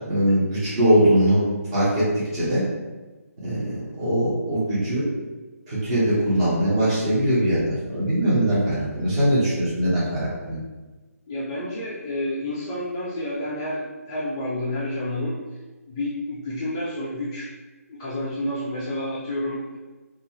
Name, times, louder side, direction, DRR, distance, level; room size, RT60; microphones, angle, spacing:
voice 1, 0.1-1.4 1.7-2.6 3.4-5.1 5.7-10.6, right 1 dB, 20° right, -10 dB, 0.9 m, -21 dB
voice 2, 11.3-15.4 15.9-17.5 17.9-19.8, left 1 dB, 15° left, -9 dB, 0.3 m, -29 dB
2.5 x 2.3 x 2.9 m, 1.2 s
figure-of-eight pair, 155°, 9 cm